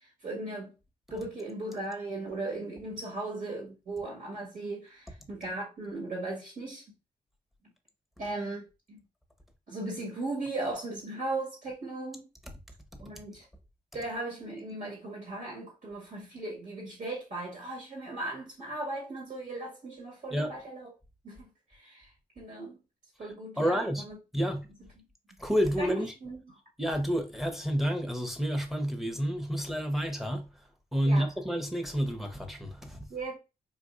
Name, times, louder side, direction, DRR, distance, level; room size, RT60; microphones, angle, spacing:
voice 1, 0.2-0.7 1.1-6.8 8.2-9.0 9.7-12.3 13.0-13.4 13.9-20.9 21.2-22.1 22.4-22.8 23.2-24.2 25.8-25.9 26.2-26.4 31.1-31.3 33.1-33.4, right 2 dB, 60° right, 1.9 m, -37 dB
voice 2, 23.6-24.0 24.3-24.7 25.4-26.1 26.8-30.4 30.9-33.1, equal, ahead, 1.0 m, -29 dB
4.0 x 2.5 x 2.5 m
supercardioid pair, 55°, 16 cm